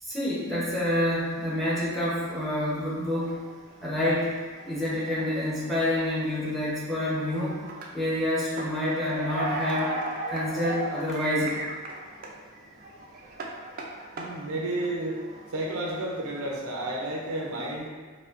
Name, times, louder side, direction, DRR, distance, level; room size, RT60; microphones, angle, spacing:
voice 1, 0.0-3.4 3.8-4.3 4.6-7.6 7.9-10.0 10.3-11.7, left 1 dB, ahead, -8 dB, 0.8 m, -28 dB
sound 1, 3.1-12.4 12.7-16.5, right 2 dB, 40° right, 0.4 m, -37 dB
voice 2, 12.0-13.1 13.3-13.4 14.2-17.9, right 1 dB, 85° right, -1 dB, 0.6 m, -33 dB
4.7 x 2.2 x 2.5 m, 1.4 s
head